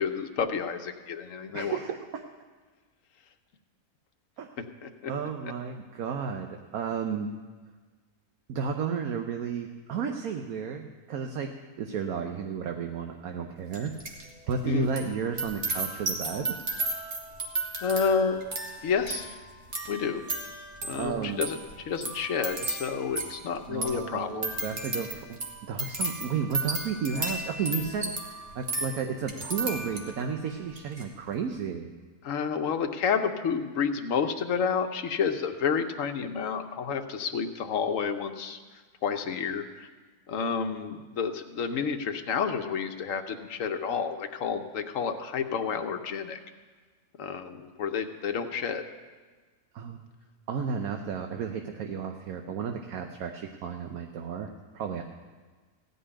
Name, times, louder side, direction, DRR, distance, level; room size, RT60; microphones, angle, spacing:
voice 1, 0.0-1.8 4.8-5.1 14.6-14.9 17.8-18.4 18.8-19.3 19.9-20.2 20.8-24.7 32.2-38.6 39.0-39.9 40.3-46.4 47.2-48.8, left 6 dB, 60° left, 7 dB, 1.2 m, -30 dB
voice 2, 1.5-2.2 4.4-4.5 5.1-7.3 8.5-16.6 20.9-21.4 23.7-31.9 49.7-50.1 50.5-55.0, right 6 dB, 70° right, 4 dB, 1.2 m, -33 dB
sound 1, 13.7-14.3 14.5-30.3 30.7-31.0, right 2 dB, 50° right, 1.8 m, -34 dB
15.5 x 5.5 x 9.8 m, 1.4 s
omnidirectional pair, 1.6 m